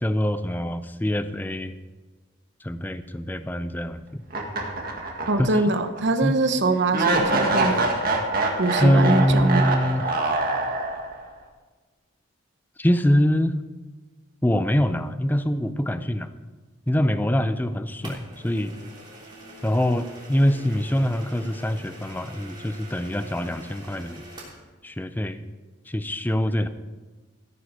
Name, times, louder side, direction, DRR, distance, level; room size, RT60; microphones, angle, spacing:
voice 1, 0.0-1.7 2.6-4.2 5.4-5.6 6.2-6.4 8.8-10.2 12.8-13.6 14.4-16.3 16.9-18.7 19.6-24.2 24.8-25.4 25.9-26.7, equal, 10° left, 11 dB, 0.5 m, -24 dB
sound 1, 4.3-5.6 6.0-6.1 6.9-11.2, right 2 dB, 45° right, 1.9 m, -25 dB
voice 2, 5.3-7.9 8.6-9.7, right 2 dB, 60° right, 8 dB, 0.8 m, -23 dB
sound 2, 18.0-24.6, right 1 dB, 25° right, 3.4 m, -44 dB
14.5 x 9.7 x 4.9 m, 1.3 s
head